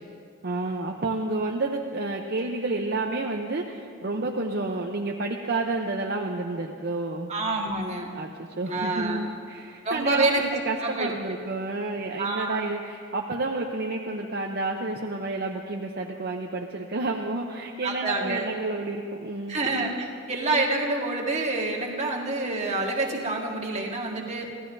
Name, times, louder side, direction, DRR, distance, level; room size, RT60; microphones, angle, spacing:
voice 1, 0.4-7.3 8.1-8.3 8.6-19.7, right 2 dB, 45° right, 1 dB, 0.7 m, -30 dB
voice 2, 7.3-8.1 8.7-9.3 9.8-10.4 10.8-11.4 12.2-12.6 17.8-18.5 19.5-24.5, right 2 dB, 30° right, -1 dB, 1.6 m, -27 dB
25.0 x 16.0 x 2.7 m, 2.3 s
head